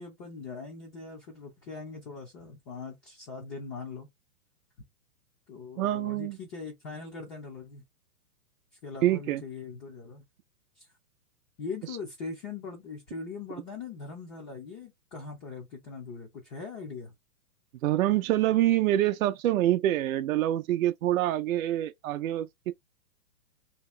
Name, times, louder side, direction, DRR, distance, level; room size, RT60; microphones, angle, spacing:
voice 1, 0.0-4.1 5.5-7.8 8.8-10.2 10.8-10.9 11.6-17.1, left 4 dB, 20° left, 0.7 m, -41 dB
voice 2, 5.8-6.4 9.0-9.4 17.8-22.7, right 13 dB, 65° right, 0.5 m, -26 dB
2.9 x 2.8 x 3.1 m
hypercardioid pair, 150°, 44 cm